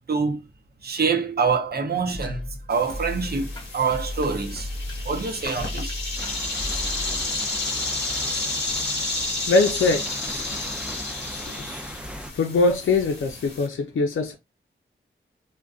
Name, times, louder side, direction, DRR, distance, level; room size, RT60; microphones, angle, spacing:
voice 1, 0.1-0.4 0.8-4.7 5.0-5.9, right 5 dB, 50° right, 0.6 m, -25 dB
sound 1, 2.1-7.3, left 1 dB, 20° left, 0.9 m, -35 dB
sound 2, 2.7-13.7, left 2 dB, 55° left, 1.1 m, -31 dB
sound 3, 6.2-12.3, right 1 dB, 5° right, 0.4 m, -38 dB
voice 2, 9.5-10.1 10.5-10.6 11.6-11.7 12.3-14.3, left 3 dB, 70° left, 0.5 m, -22 dB
2.4 x 2.2 x 2.3 m
cardioid pair, 50°, 21 cm